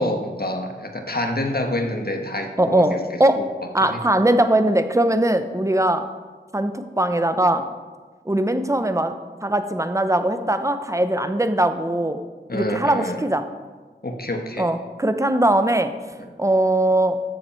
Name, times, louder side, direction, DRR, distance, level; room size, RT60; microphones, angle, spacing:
voice 1, 0.0-3.4 3.8-4.0 12.5-13.3 14.0-14.7, left 1 dB, 55° left, 4 dB, 1.4 m, -27 dB
voice 2, 2.6-3.4 3.7-6.0 6.5-7.7 8.3-9.1 9.4-12.2 12.5-13.5 14.6-15.9 16.4-17.2, right 1 dB, 15° right, 9 dB, 0.8 m, -20 dB
13.0 x 7.2 x 4.6 m, 1.4 s
wide cardioid pair, 50°, 19 cm